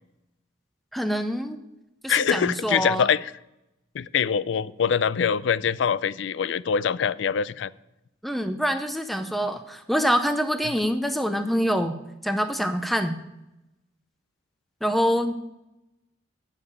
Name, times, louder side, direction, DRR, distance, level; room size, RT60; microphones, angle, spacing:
voice 1, 0.9-1.6 2.0-3.1 8.2-11.9 12.2-13.1 14.8-15.4, equal, ahead, 7 dB, 0.5 m, -25 dB
voice 2, 2.1-3.3 3.9-7.7 10.6-10.7, left 7 dB, 70° left, 18 dB, 0.4 m, -24 dB
8.8 x 6.5 x 8.4 m, 0.91 s
head